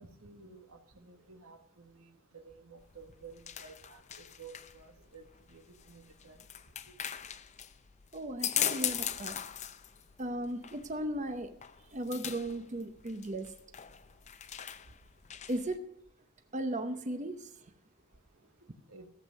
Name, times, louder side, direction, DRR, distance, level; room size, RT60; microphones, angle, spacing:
voice 1, 0.0-6.4 6.9-7.0 18.9-19.1, right 4 dB, 90° right, 1.8 m, -53 dB
sound 1, 2.8-15.8, left 10 dB, 35° left, 0.6 m, -40 dB
voice 2, 8.1-9.4 10.2-13.5 15.5-15.8 16.5-17.7, right 1 dB, 35° right, 0.8 m, -36 dB
14.0 x 8.2 x 6.5 m
head